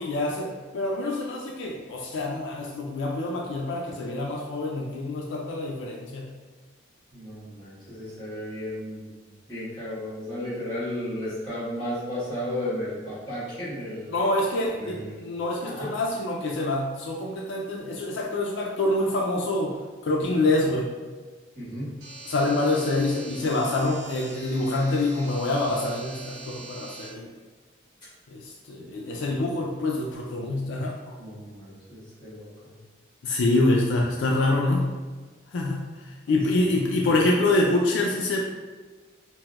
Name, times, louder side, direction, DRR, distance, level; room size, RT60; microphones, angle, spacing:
voice 1, 0.0-6.3 14.1-19.8 20.0-20.9 22.3-27.3 28.3-31.0 33.2-34.9 35.5-38.4, left 2 dB, 80° left, -1 dB, 0.3 m, -26 dB
voice 2, 7.1-9.1 9.5-14.1 14.8-15.2 15.6-15.9 20.3-20.4 21.5-21.9 30.3-30.5 31.2-32.5, left 1 dB, 25° left, -12 dB, 1.3 m, -34 dB
sound 1, 22.0-27.1, right 3 dB, 85° right, 0.8 m, -43 dB
3.9 x 2.0 x 2.3 m, 1.4 s
head